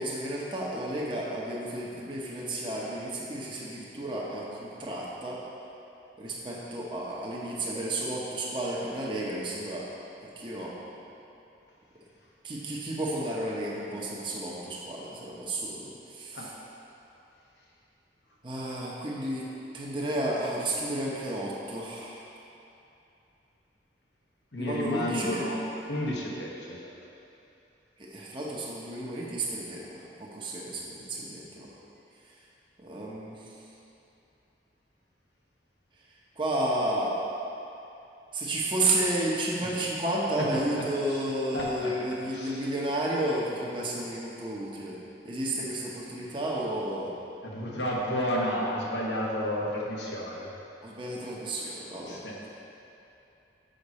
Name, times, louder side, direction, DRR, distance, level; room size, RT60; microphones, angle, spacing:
voice 1, 0.0-5.4 6.2-9.9 10.4-10.8 12.4-16.5 18.4-19.5 19.7-22.3 24.6-25.5 28.0-31.7 32.8-33.5 36.4-37.2 38.3-45.0 45.2-47.1 50.8-52.2, right 1 dB, 30° right, -5 dB, 0.9 m, -32 dB
voice 2, 24.5-25.6 25.9-26.9 39.6-39.9 40.4-41.2 41.5-41.9 42.3-42.6 47.4-50.5 51.6-52.5, equal, 90° left, -3 dB, 1.2 m, -32 dB
6.6 x 5.8 x 4.2 m, 2.8 s
head